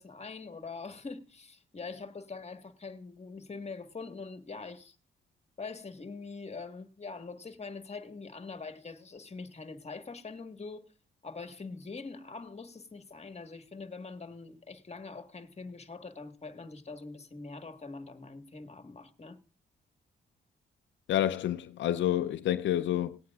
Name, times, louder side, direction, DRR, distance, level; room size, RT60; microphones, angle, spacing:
voice 1, 0.0-4.9 5.6-10.9 11.2-19.4, left 4 dB, 35° left, 1.5 m, -43 dB
voice 2, 21.1-23.2, left 12 dB, 80° left, 0.5 m, -29 dB
19.0 x 9.2 x 2.4 m
cardioid pair, 60°, 19 cm